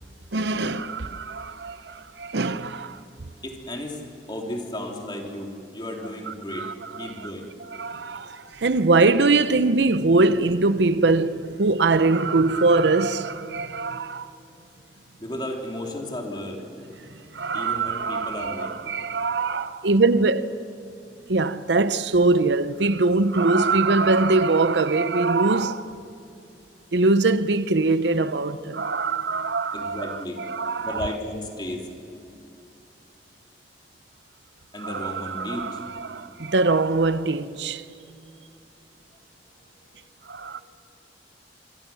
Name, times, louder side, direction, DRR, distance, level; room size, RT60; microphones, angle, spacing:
voice 1, 0.3-3.0 6.3-7.3 7.8-14.3 17.3-20.5 21.3-25.9 26.9-31.1 34.8-37.8 40.3-40.6, right 3 dB, 80° right, 0.8 m, -22 dB
voice 2, 3.4-4.0 4.3-6.7 7.0-7.5 15.2-16.6 17.5-18.8 29.7-30.4 30.8-31.9 34.7-35.8 39.8-39.9 40.4-40.6, left 1 dB, 25° left, 3.2 m, -34 dB
26.5 x 24.0 x 7.1 m
head